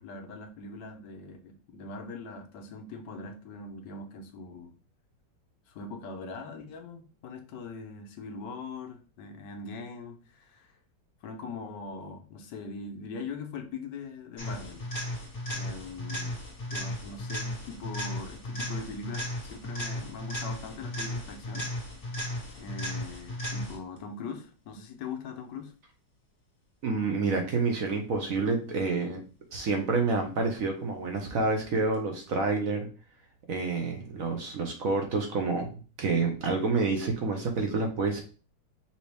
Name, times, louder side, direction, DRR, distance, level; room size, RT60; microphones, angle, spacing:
voice 1, 0.0-4.7 5.7-10.8 11.2-14.8 15.5-16.4 16.7-21.7 22.6-25.7, left 4 dB, 75° left, 5 dB, 1.3 m, -41 dB
sound 1, 14.4-24.0 31.9-32.0, equal, 30° left, 2.1 m, -35 dB
voice 2, 26.8-29.2 29.5-32.9 33.5-35.7 36.0-38.2, right 3 dB, 60° right, 3 dB, 1.0 m, -28 dB
5.4 x 2.9 x 3.3 m, 0.36 s
omnidirectional pair, 1.9 m